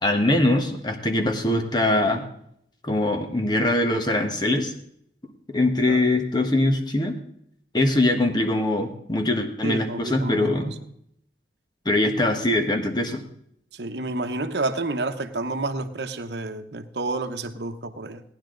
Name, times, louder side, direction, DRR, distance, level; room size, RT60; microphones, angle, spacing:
voice 1, 0.0-2.3 2.8-4.7 5.5-7.2 7.7-10.7 11.8-13.2, left 1 dB, 25° left, 5 dB, 1.4 m, -22 dB
voice 2, 9.6-10.7 13.7-18.2, right 2 dB, 70° right, 6 dB, 1.0 m, -30 dB
17.5 x 10.5 x 3.9 m, 0.69 s
head